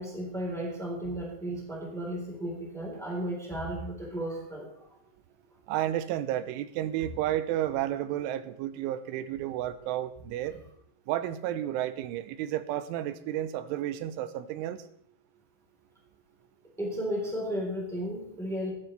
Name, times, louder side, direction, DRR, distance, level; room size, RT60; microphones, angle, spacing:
voice 1, 0.0-5.0 16.8-18.7, equal, ahead, -2 dB, 2.9 m, -34 dB
voice 2, 5.7-10.6 11.1-14.8, right 12 dB, 90° right, 13 dB, 3.1 m, -32 dB
16.0 x 11.5 x 3.3 m, 0.74 s
omnidirectional pair, 5.5 m